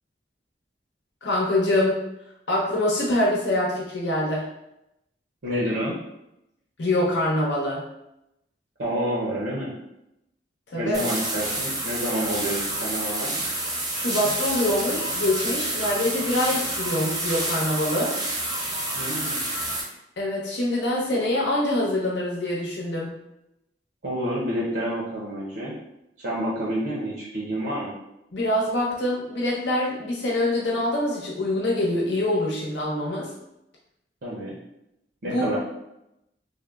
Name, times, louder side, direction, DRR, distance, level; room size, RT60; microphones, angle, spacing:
voice 1, 1.2-2.0 2.5-4.5 6.8-7.8 10.7-11.0 13.9-18.1 20.2-23.2 28.3-33.3 35.2-35.5, left 1 dB, 90° left, -4 dB, 0.9 m, -24 dB
voice 2, 5.4-5.9 8.8-9.7 10.8-13.3 18.9-19.4 24.0-25.7 26.2-27.9 34.2-34.5 35.2-35.6, right 1 dB, 70° right, -5 dB, 0.6 m, -28 dB
sound 1, 10.9-19.8, right 1 dB, 20° right, 0.5 m, -28 dB
3.4 x 2.0 x 2.3 m, 0.85 s
head